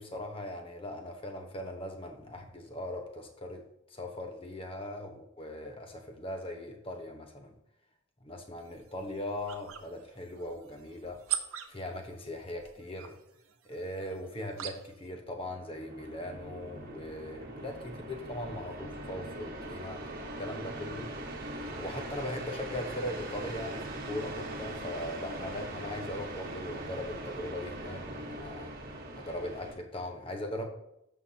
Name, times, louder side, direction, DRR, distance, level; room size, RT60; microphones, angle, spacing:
voice 1, 0.0-3.6 3.9-7.5 8.2-11.2 11.7-13.2 13.6-20.0 20.4-21.1 21.7-28.7 29.1-30.7, left 1 dB, 25° left, 4 dB, 1.1 m, -39 dB
sound 1, 8.6-15.1, right 11 dB, 85° right, 0.8 m, -43 dB
sound 2, 15.3-29.7, right 1 dB, 45° right, 1.3 m, -41 dB
13.0 x 5.7 x 2.8 m, 0.81 s
head